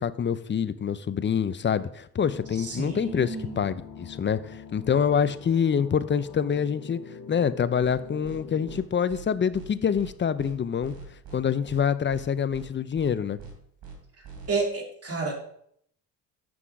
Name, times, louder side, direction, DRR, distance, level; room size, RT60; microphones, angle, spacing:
voice 1, 0.0-7.0 7.3-10.9 11.3-13.4, left 7 dB, 25° left, 14 dB, 0.6 m, -26 dB
sound 1, 2.2-8.8, left 6 dB, 70° left, 2.0 m, -44 dB
voice 2, 2.6-3.7 14.5-15.3, right 3 dB, 35° right, 0 dB, 3.0 m, -30 dB
sound 2, 7.8-8.0 8.2-8.4 8.7-8.8 9.1-9.2 9.5-9.7 10.0-10.1 10.4-10.5 10.8-11.4 11.7-11.8 12.1-12.2 12.5-12.7 13.0-13.1 13.4-13.5 13.8-14.0 14.2-14.5, right 6 dB, 60° right, 3.3 m, -43 dB
7.8 x 6.1 x 4.7 m, 0.67 s
supercardioid pair, 70°, 41 cm